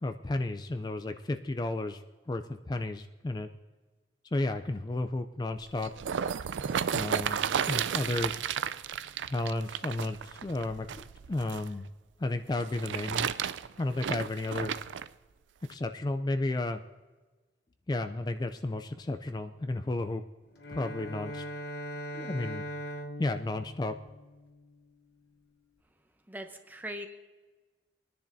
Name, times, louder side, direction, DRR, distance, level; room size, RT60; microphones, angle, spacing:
voice 1, 0.0-2.0 2.3-3.5 4.3-5.9 6.9-7.4 7.7-8.4 9.2-10.9 11.3-11.9 12.2-13.3 13.8-14.7 15.7-16.8 17.9-20.2 20.7-21.4 22.1-22.6 23.2-23.9, left 2 dB, 20° left, 8 dB, 0.4 m, -32 dB
sound 1, 5.6-11.7 12.5-15.1 15.7-15.8, right 8 dB, 80° right, 0.4 m, -33 dB
Bowed string instrument, 20.5-24.9, equal, 60° left, 1.0 m, -41 dB
voice 2, 26.3-27.1, right 1 dB, 10° right, 6 dB, 0.7 m, -40 dB
21.5 x 10.5 x 2.7 m, 1.3 s
head